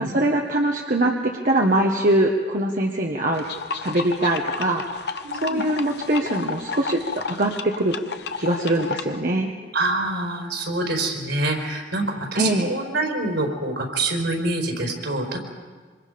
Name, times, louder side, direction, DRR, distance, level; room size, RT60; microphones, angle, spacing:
voice 1, 0.0-3.4 3.7-4.8 5.4-7.9 8.4-9.5 12.3-12.7, right 1 dB, 45° right, 0 dB, 1.3 m, -22 dB
sound 1, 3.3-9.2, left 5 dB, 60° left, 1.0 m, -32 dB
voice 2, 5.2-5.6 9.7-15.4, right 2 dB, 75° right, 1 dB, 4.8 m, -26 dB
26.5 x 25.5 x 5.3 m, 1.5 s
head